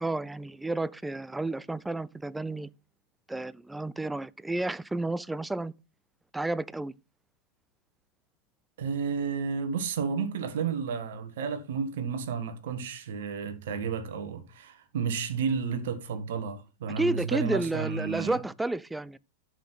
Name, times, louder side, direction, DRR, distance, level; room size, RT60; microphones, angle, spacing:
voice 1, 0.0-2.7 3.3-5.7 6.3-6.9 17.0-19.2, right 2 dB, 5° right, 0.4 m, -31 dB
voice 2, 8.8-18.4, right 6 dB, 55° right, 1.5 m, -32 dB
11.0 x 6.4 x 4.0 m
figure-of-eight pair, 90°, 0 cm